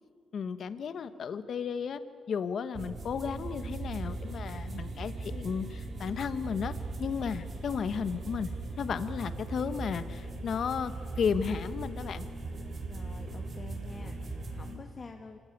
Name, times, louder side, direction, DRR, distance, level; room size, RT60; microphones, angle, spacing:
voice 1, 0.3-2.0 2.3-6.7 7.0-8.5 8.8-12.2, left 6 dB, 60° left, 12 dB, 1.1 m, -33 dB
sound 1, 2.7-14.8, right 3 dB, 45° right, 4.6 m, -39 dB
voice 2, 12.9-15.4, left 4 dB, 35° left, 5 dB, 1.7 m, -48 dB
27.5 x 16.5 x 9.8 m, 2.1 s
cardioid pair, 110°, 0 cm